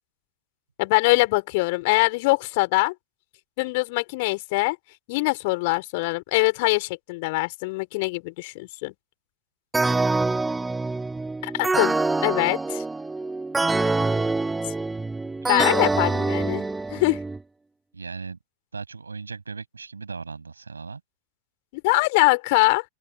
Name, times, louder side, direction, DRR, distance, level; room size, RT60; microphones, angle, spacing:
voice 1, 0.8-2.9 3.6-4.8 5.1-8.9 11.4-12.0 12.2-12.8 15.5-17.2 21.7-22.8, left 25 dB, 50° left, 4.7 m, -23 dB
sound 1, 9.7-17.4, right 3 dB, 10° right, 2.0 m, -25 dB
voice 2, 15.4-15.7 17.9-18.4 18.7-21.0, right 4 dB, 75° right, 6.2 m, -37 dB
open air
figure-of-eight pair, 90°, 0 cm